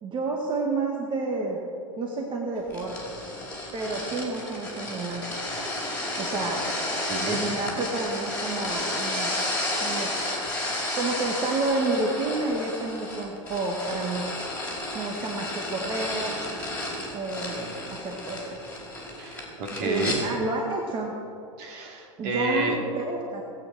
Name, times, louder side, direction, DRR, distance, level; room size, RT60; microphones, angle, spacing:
voice 1, 0.0-1.6 2.0-3.1 3.7-5.4 6.2-6.7 7.3-9.3 9.8-10.1 11.0-14.3 14.9-16.4 17.1-18.5 19.8-21.1 22.2-23.4, right 3 dB, 30° right, 1 dB, 1.9 m, -30 dB
sound 1, 2.7-20.2, left 1 dB, 10° left, 4.7 m, -32 dB
voice 2, 7.1-7.4 9.0-9.1 19.2-20.2 21.6-22.8, right 2 dB, 50° right, 1 dB, 3.0 m, -30 dB
19.0 x 9.0 x 6.4 m, 2.5 s
figure-of-eight pair, 90°, 17 cm